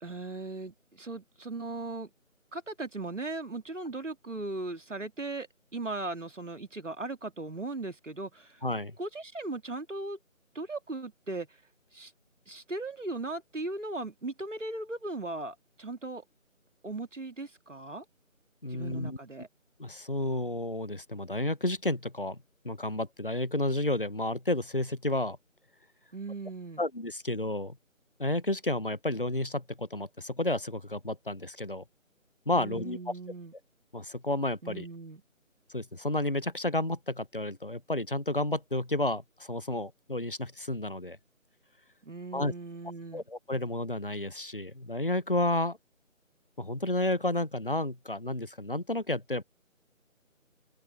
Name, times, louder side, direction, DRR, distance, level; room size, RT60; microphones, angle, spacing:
voice 1, 0.0-2.1 2.5-8.6 9.0-10.2 10.5-11.6 11.9-12.1 12.5-16.2 16.8-18.1 18.7-19.5 26.1-26.8 32.5-33.5 34.6-35.2 42.0-43.2, right 2 dB, 60° right, 2.2 m, -38 dB
voice 2, 8.6-8.9 18.6-19.2 19.8-22.4 22.6-25.4 26.8-27.8 28.2-31.8 32.5-33.0 33.9-34.9 35.7-41.2 42.3-42.5 43.1-45.8 46.6-49.4, left 1 dB, 40° left, 0.6 m, -31 dB
open air
figure-of-eight pair, 165°, 40 cm